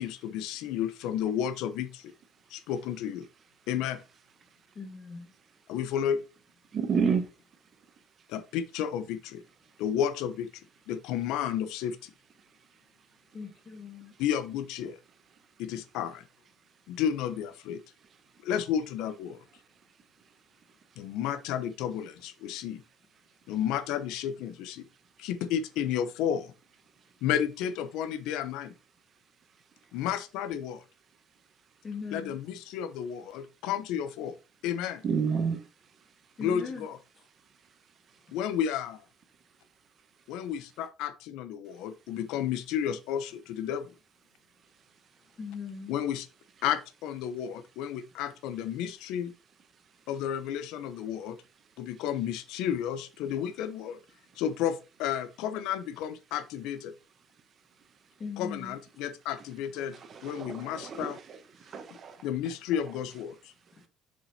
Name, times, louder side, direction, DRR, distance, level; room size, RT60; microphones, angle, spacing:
voice 1, 0.0-2.1 2.5-3.3 3.7-4.0 5.7-6.2 8.3-9.4 9.8-10.5 10.9-12.1 14.2-15.0 15.6-16.2 16.9-17.8 18.4-19.4 21.0-22.8 23.5-24.9 25.2-26.5 27.2-28.7 29.9-30.8 32.1-34.4 34.6-35.0 36.4-37.0 38.3-39.0 40.3-43.9 45.9-46.3 46.6-49.3 50.1-51.4 51.8-54.0 54.4-56.9 58.4-59.9 60.2-61.2 62.2-63.5, left 9 dB, 85° left, 0.9 m, -32 dB
voice 2, 4.7-5.3 6.9-7.2 13.3-14.2 31.8-32.4 36.4-36.9 37.2-37.3 45.3-45.9 58.2-58.8 63.8-63.9, left 5 dB, 30° left, 2.0 m, -40 dB
voice 3, 6.7-7.2 35.0-35.6 60.1-61.1 61.7-62.2, right 6 dB, 35° right, 1.3 m, -29 dB
6.8 x 5.4 x 4.2 m
cardioid pair, 155°, 0 cm